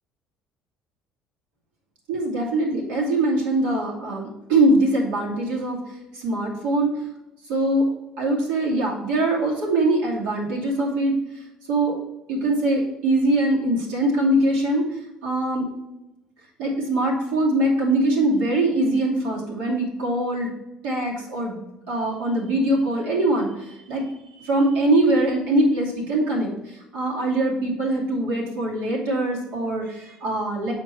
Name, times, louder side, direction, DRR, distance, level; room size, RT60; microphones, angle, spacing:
voice 1, 2.1-5.8 6.1-6.9 7.5-7.9 8.2-11.2 11.7-12.0 12.3-14.9 15.2-15.7 16.6-20.5 20.8-21.6 21.9-30.7, right 1 dB, 85° right, -3 dB, 2.4 m, -22 dB
7.1 x 4.4 x 4.4 m, 0.96 s
supercardioid pair, 95°, 2 cm